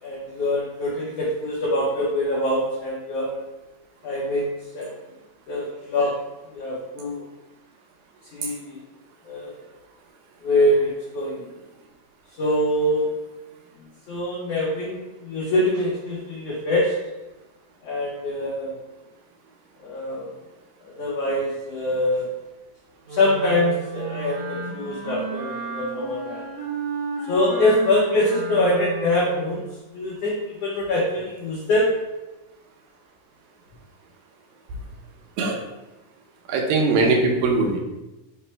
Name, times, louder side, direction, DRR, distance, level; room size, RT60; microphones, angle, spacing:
voice 1, 0.0-3.4 4.0-4.9 5.5-6.2 6.5-7.2 8.3-8.8 9.2-9.5 10.4-11.4 12.4-13.1 14.1-16.9 17.8-18.7 19.8-20.3 20.8-22.3 23.1-26.4 27.3-29.7 29.9-31.9, left 1 dB, 90° left, -5 dB, 1.4 m, -24 dB
Wind instrument woodwind instrument, 23.1-29.7, right 4 dB, 65° right, 2.1 m, -33 dB
voice 2, 36.5-37.8, right 3 dB, 80° right, 1 dB, 2.5 m, -20 dB
5.8 x 2.1 x 4.4 m, 1.0 s
omnidirectional pair, 3.9 m